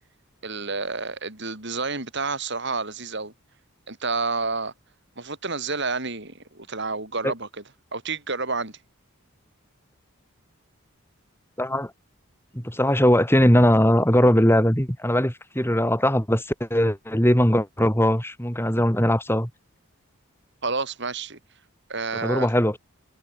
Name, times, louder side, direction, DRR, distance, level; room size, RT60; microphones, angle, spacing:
voice 1, 0.4-3.3 3.9-4.7 5.2-7.5 7.9-8.8 20.6-21.4 21.9-22.5, right 4 dB, 55° right, 5.4 m, -29 dB
voice 2, 11.6-11.9 12.5-19.5 22.2-22.8, equal, 10° left, 7.0 m, -20 dB
head